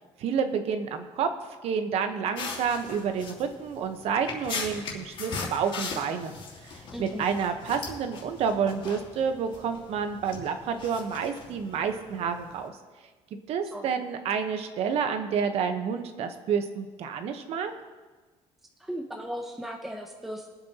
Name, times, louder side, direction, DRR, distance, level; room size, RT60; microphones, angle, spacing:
voice 1, 0.2-1.3 1.6-6.3 6.6-12.7 13.5-17.7, right 6 dB, 60° right, 7 dB, 1.1 m, -29 dB
sound 1, 2.3-12.7, left 4 dB, 50° left, 3.0 m, -40 dB
voice 2, 6.9-7.3 13.6-14.0 18.8-20.5, equal, ahead, 2 dB, 0.8 m, -37 dB
22.5 x 8.6 x 3.0 m, 1.3 s
cardioid pair, 150°, 12 cm